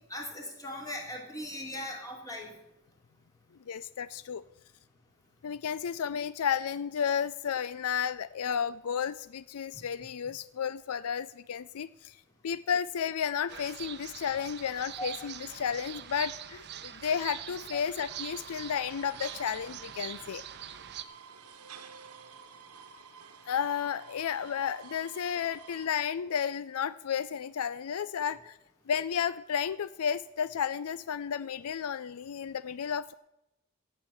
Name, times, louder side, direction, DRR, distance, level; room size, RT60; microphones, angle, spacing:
voice 1, 0.1-2.5 15.0-15.1 17.7-17.8, left 1 dB, 15° left, 1 dB, 3.0 m, -39 dB
voice 2, 3.7-4.4 5.4-12.2 12.4-20.4 23.5-28.6 28.9-33.1, left 7 dB, 75° left, 17 dB, 0.4 m, -32 dB
sound 1, 13.5-21.0, right 10 dB, 50° right, 0.8 m, -43 dB
sound 2, 18.1-25.9, right 6 dB, 90° right, 1.2 m, -51 dB
16.0 x 8.2 x 6.9 m, 0.88 s
head